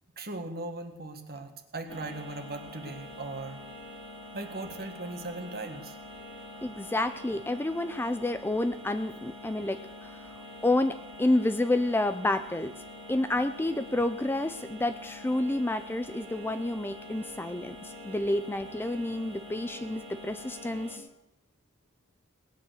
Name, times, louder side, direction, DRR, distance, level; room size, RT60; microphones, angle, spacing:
voice 1, 0.2-3.6 4.3-6.0, right 2 dB, 45° right, 6 dB, 1.7 m, -38 dB
sound 1, 1.9-21.0, left 1 dB, 25° right, 3.1 m, -45 dB
voice 2, 6.6-10.2 10.6-12.7 13.1-21.0, left 1 dB, 10° left, 10 dB, 0.5 m, -29 dB
19.0 x 9.2 x 6.6 m, 0.88 s
head